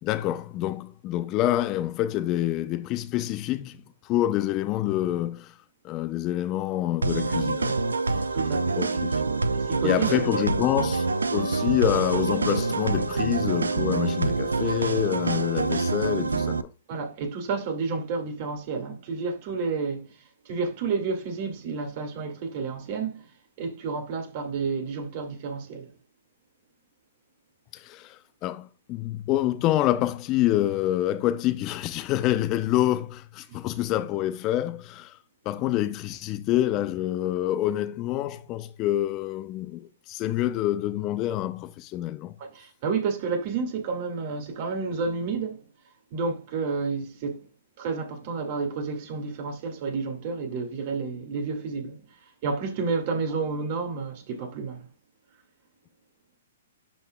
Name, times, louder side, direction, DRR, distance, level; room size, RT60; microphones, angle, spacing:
voice 1, 0.0-5.5 5.8-7.8 8.8-9.2 9.8-11.1 11.3-16.7 27.7-35.2 35.5-42.3, left 13 dB, 30° left, 0.5 m, -27 dB
sound 1, 7.0-16.6, right 3 dB, 90° right, 0.5 m, -26 dB
voice 2, 8.3-8.8 9.5-10.2 16.9-20.1 20.5-23.3 23.6-25.9 42.4-45.6 46.1-47.4 47.8-52.0 52.4-54.9, right 4 dB, 45° right, 1.9 m, -30 dB
11.5 x 4.1 x 2.2 m
hypercardioid pair, 125°, 0 cm